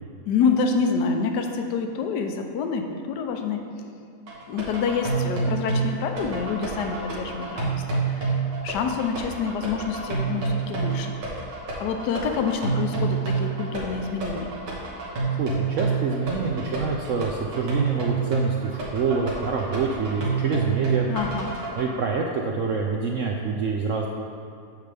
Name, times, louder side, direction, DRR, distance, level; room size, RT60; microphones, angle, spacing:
voice 1, 0.3-3.9 4.5-11.1 11.8-14.5 21.1-21.5, left 5 dB, 80° left, 5 dB, 1.2 m, -27 dB
sound 1, 4.3-21.8, right 4 dB, 90° right, 2.2 m, -28 dB
voice 2, 15.4-21.1 21.8-24.1, right 5 dB, 70° right, 0 dB, 0.8 m, -26 dB
9.5 x 6.7 x 3.4 m, 2.4 s
omnidirectional pair, 1.8 m